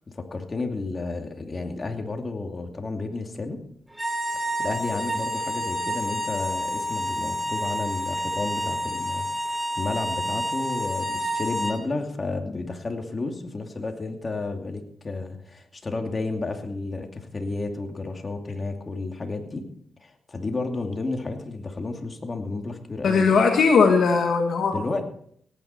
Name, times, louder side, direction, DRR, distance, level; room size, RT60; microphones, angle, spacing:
voice 1, 0.1-3.6 4.3-19.7 20.0-23.3 24.7-25.0, left 3 dB, 40° left, 4 dB, 2.6 m, -32 dB
sound 1, 3.9-11.8, equal, 10° right, 3.2 m, -29 dB
voice 2, 23.0-24.8, left 5 dB, 70° left, 4 dB, 1.4 m, -19 dB
17.5 x 9.9 x 4.4 m, 0.63 s
supercardioid pair, 45°, 0 cm